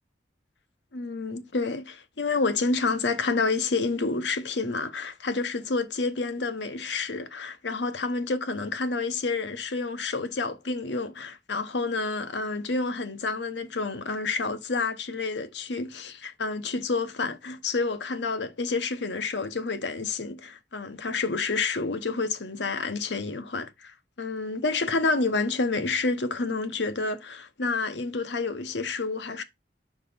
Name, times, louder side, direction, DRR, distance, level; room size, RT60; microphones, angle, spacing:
voice 1, 0.9-29.4, left 3 dB, 75° left, 0.9 m, -29 dB
4.9 x 4.2 x 5.5 m
head